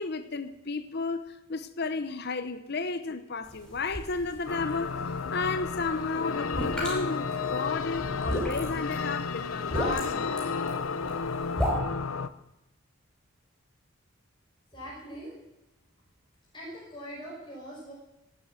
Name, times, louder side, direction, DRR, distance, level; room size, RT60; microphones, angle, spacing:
voice 1, 0.0-5.0 5.3-10.5, left 3 dB, 50° left, 0.9 m, -33 dB
sound 1, 3.4-11.7, equal, 5° left, 3.8 m, -36 dB
sound 2, 4.5-12.3, left 5 dB, 80° left, 0.7 m, -32 dB
voice 2, 14.7-15.4 16.5-17.9, equal, 20° left, 5.1 m, -42 dB
17.5 x 8.2 x 8.3 m
head